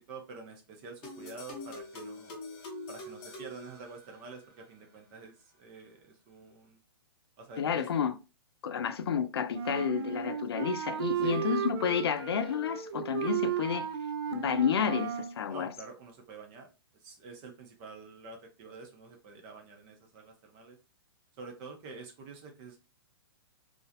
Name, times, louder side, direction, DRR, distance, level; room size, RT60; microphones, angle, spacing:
voice 1, 0.0-2.4 2.9-6.8 7.4-7.9 11.2-11.5 15.5-16.7 17.0-20.8 21.4-22.8, right 4 dB, 25° right, 0.5 m, -48 dB
sound 1, 1.0-4.5, left 2 dB, 25° left, 0.7 m, -44 dB
voice 2, 7.6-8.2 8.6-13.9 14.3-15.7, left 7 dB, 90° left, 0.5 m, -30 dB
Wind instrument woodwind instrument, 9.5-15.4, right 9 dB, 85° right, 0.4 m, -34 dB
2.4 x 2.0 x 2.7 m
hypercardioid pair, 170°, 13 cm